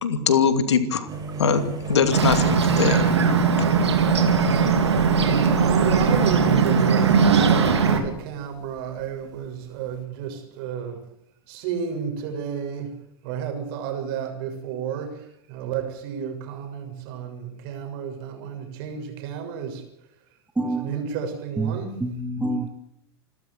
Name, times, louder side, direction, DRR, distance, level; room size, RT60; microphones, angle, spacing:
voice 1, 0.0-1.1 1.4-3.2, left 6 dB, 80° left, 10 dB, 2.6 m, -22 dB
sound 1, 1.1-6.9 7.5-9.0 9.3-9.5 9.8-10.0, right 3 dB, 25° right, 7.7 m, -34 dB
Bird, 2.1-8.0, right 5 dB, 85° right, 3.4 m, -19 dB
voice 2, 5.5-11.0 11.5-13.0 13.2-19.8 20.6-22.0, right 7 dB, 55° right, 6 dB, 6.7 m, -32 dB
voice 3, 20.6-20.9 21.6-22.7, right 2 dB, 10° right, 7 dB, 1.9 m, -27 dB
27.5 x 13.5 x 8.2 m, 0.76 s
hypercardioid pair, 100°, 14 cm